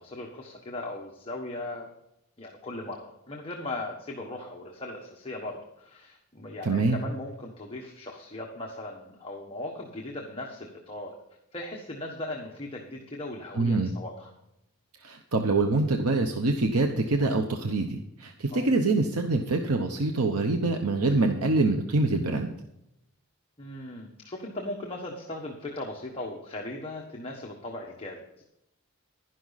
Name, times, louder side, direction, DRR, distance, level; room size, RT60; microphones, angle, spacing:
voice 1, 0.0-1.9 2.4-11.2 11.5-14.3 18.5-18.7 23.6-28.4, left 2 dB, 25° left, -1 dB, 1.4 m, -38 dB
voice 2, 6.6-7.0 13.6-13.9 15.0-22.5, right 3 dB, 85° right, 4 dB, 1.0 m, -25 dB
11.5 x 11.0 x 4.1 m, 0.83 s
head